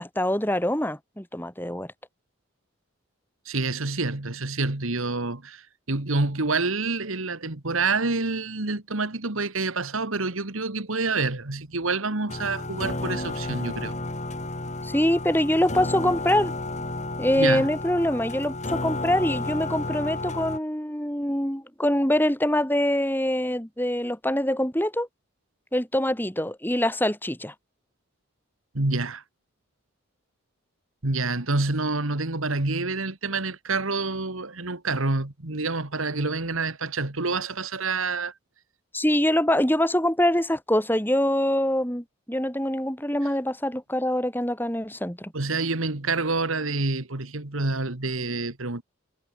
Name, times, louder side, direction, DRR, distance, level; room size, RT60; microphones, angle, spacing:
voice 1, 0.0-1.9 14.8-16.5 17.2-25.1 25.7-27.5 38.9-45.3, left 1 dB, 10° left, 3.6 m, -24 dB
voice 2, 3.5-14.0 17.3-17.7 28.7-29.2 31.0-38.3 45.3-48.8, right 3 dB, 75° right, 2.1 m, -27 dB
sound 1, 12.3-20.6, left 2 dB, 35° left, 2.5 m, -32 dB
head